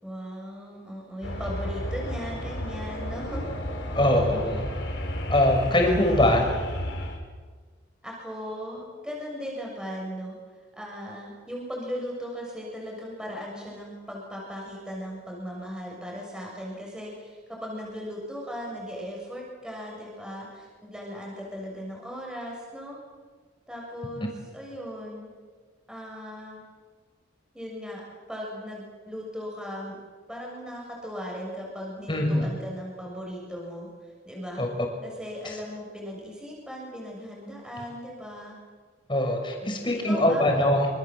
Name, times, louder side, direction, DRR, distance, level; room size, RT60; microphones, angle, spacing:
voice 1, 0.0-3.5 5.6-5.8 6.1-6.5 8.0-10.3 10.7-23.0 23.7-25.3 25.9-26.6 27.5-28.0 28.3-30.0 30.3-33.9 34.3-34.6 35.0-38.6 39.6-40.8, equal, 5° right, -2 dB, 7.0 m, -37 dB
sound 1, 1.2-7.2, equal, 75° left, 5.6 m, -32 dB
voice 2, 3.9-4.7 5.3-6.4 32.1-32.5 34.6-34.7 35.4-35.5 39.1-40.9, left 1 dB, 25° left, 3 dB, 6.0 m, -22 dB
27.5 x 27.0 x 7.9 m, 1.5 s
head